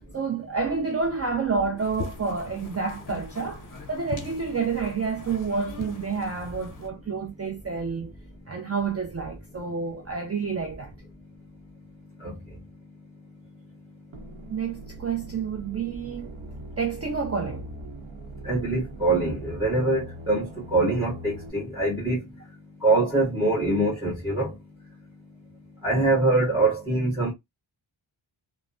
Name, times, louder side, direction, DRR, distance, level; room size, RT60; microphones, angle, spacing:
voice 1, 0.1-8.1 8.5-10.9 14.5-16.3 16.8-17.7, right 5 dB, 30° right, 0.5 m, -29 dB
sound 1, 1.8-6.9, left 4 dB, 40° left, 0.6 m, -40 dB
sound 2, 14.1-21.5, right 1 dB, 85° right, 0.8 m, -41 dB
voice 2, 18.4-22.2 22.8-24.5 25.8-27.3, right 2 dB, 10° right, 1.3 m, -24 dB
3.2 x 2.1 x 2.5 m
wide cardioid pair, 105°, 48 cm